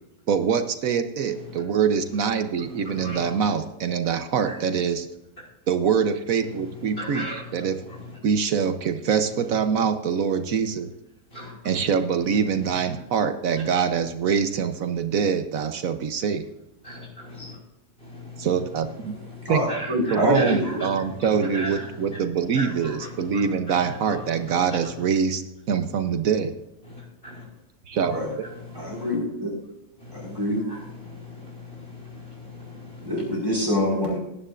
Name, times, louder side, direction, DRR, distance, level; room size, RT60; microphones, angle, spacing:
voice 1, 0.3-5.1 5.7-7.2 7.5-7.8 8.2-10.9 11.6-16.5 18.4-19.2 19.5-19.6 19.9-26.5 27.9-28.2, right 6 dB, 70° right, 9 dB, 1.2 m, -24 dB
voice 2, 1.3-1.6 2.1-2.2 2.6-3.5 4.5-4.6 6.4-8.2 9.3-9.5 11.3-11.8 12.3-13.0 13.5-13.6 16.8-17.6 18.0-25.0 26.8-27.5 27.9-29.2 30.0-33.3, left 1 dB, 40° left, -3 dB, 5.4 m, -39 dB
voice 3, 19.4-20.6 21.3-21.4 28.0-28.3 28.7-29.5 30.1-30.6 33.0-34.2, left 1 dB, 15° right, -3 dB, 4.9 m, -25 dB
18.0 x 9.8 x 2.5 m, 0.90 s
omnidirectional pair, 1.6 m